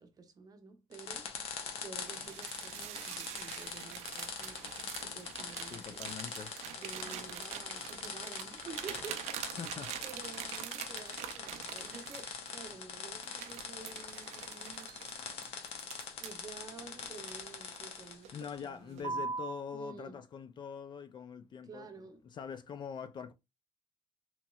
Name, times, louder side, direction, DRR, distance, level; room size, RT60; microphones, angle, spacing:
voice 1, 0.0-1.3 1.8-6.1 6.8-9.6 10.0-15.0 16.2-19.3 19.7-20.2 21.6-22.2, right 4 dB, 35° right, 0.6 m, -51 dB
sound 1, 0.9-18.7, left 6 dB, 65° left, 0.7 m, -44 dB
sound 2, 2.0-12.7 13.2-16.5 17.0-17.9 18.2-18.5 19.0-19.5, right 7 dB, 85° right, 0.4 m, -44 dB
voice 2, 5.7-6.5 9.6-9.9 18.3-23.3, left 6 dB, 45° left, 0.4 m, -44 dB
3.0 x 2.8 x 2.3 m
cardioid pair, 110°, 11 cm